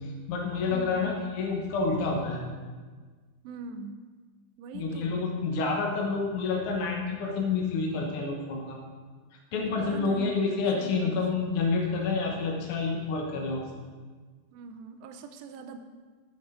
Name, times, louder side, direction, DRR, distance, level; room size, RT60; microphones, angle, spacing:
voice 1, 0.0-2.4 4.7-8.8 9.5-13.7, left 4 dB, 65° left, -1 dB, 1.3 m, -28 dB
voice 2, 0.7-1.1 3.4-4.0 4.6-5.2 9.8-11.6 14.5-15.8, right 4 dB, 80° right, 7 dB, 2.5 m, -42 dB
9.6 x 8.4 x 5.0 m, 1.4 s
omnidirectional pair, 4.2 m